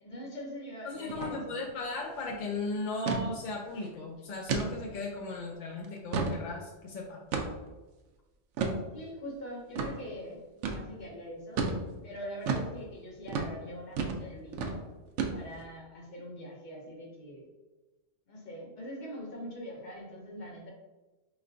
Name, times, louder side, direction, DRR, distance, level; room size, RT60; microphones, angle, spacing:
voice 1, 0.0-1.6 8.9-11.7 12.0-14.9 15.3-17.5 18.3-20.7, equal, 45° left, -2 dB, 0.9 m, -43 dB
voice 2, 0.8-7.2, left 3 dB, 60° left, -2 dB, 0.5 m, -37 dB
sound 1, 1.1-1.3 1.6-1.7 2.1-2.4 3.1-3.3 3.7-3.9 4.5-4.7 5.2-5.3 5.8-6.4 7.3-7.7 8.6-8.8 9.8-9.9 10.6-10.8 11.6-11.8 12.5-12.7 13.3-13.5 14.0-14.2 14.5-14.8 15.2-15.6, right 4 dB, 80° right, 0.9 m, -31 dB
4.4 x 3.0 x 2.5 m, 1.2 s
omnidirectional pair, 1.2 m